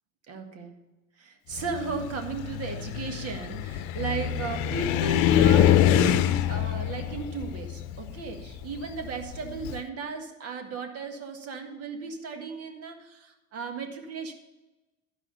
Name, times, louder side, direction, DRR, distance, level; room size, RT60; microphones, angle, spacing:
voice 1, 0.3-0.8 1.2-14.3, right 4 dB, 50° right, 5 dB, 1.8 m, -35 dB
Car, 1.6-9.8, left 11 dB, 70° left, 0.7 m, -25 dB
12.5 x 4.9 x 6.9 m, 1.1 s
supercardioid pair, 95°, 31 cm